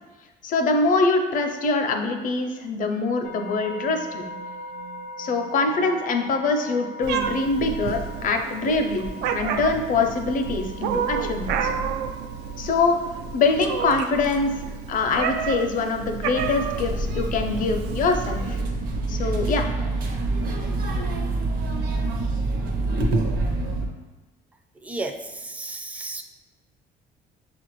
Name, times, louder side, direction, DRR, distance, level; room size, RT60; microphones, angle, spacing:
voice 1, 0.4-4.2 5.2-11.7 12.6-13.0 13.3-14.5 14.9-18.6 19.1-19.7, left 3 dB, 50° left, 5 dB, 0.6 m, -24 dB
sound 1, 3.2-14.7, left 1 dB, 90° left, 0.6 m, -41 dB
Meow, 7.0-18.6, right 6 dB, 80° right, 0.4 m, -30 dB
sound 2, 16.3-23.9, right 2 dB, 60° right, 0.8 m, -26 dB
voice 2, 24.8-26.2, right 2 dB, 10° right, 5 dB, 0.4 m, -33 dB
6.1 x 2.5 x 3.0 m, 1.2 s
cardioid pair, 110°, 17 cm